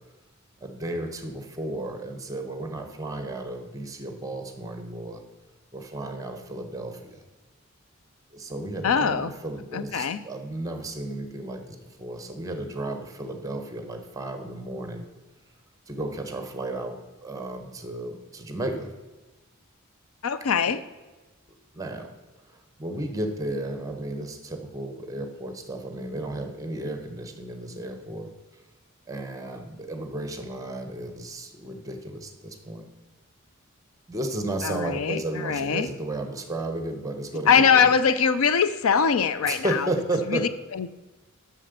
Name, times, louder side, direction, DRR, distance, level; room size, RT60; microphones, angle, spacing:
voice 1, 0.6-5.2 5.7-7.2 8.3-15.1 15.9-18.9 20.6-20.7 21.7-22.1 22.5-28.3 29.1-32.9 34.1-37.9 39.5-40.5, right 2 dB, 15° right, 6 dB, 1.0 m, -33 dB
voice 2, 8.8-9.3 9.7-10.2 20.2-20.8 34.6-35.9 37.5-39.9 40.3-40.9, left 6 dB, 75° left, 13 dB, 0.5 m, -22 dB
7.5 x 6.8 x 6.6 m, 1.1 s
head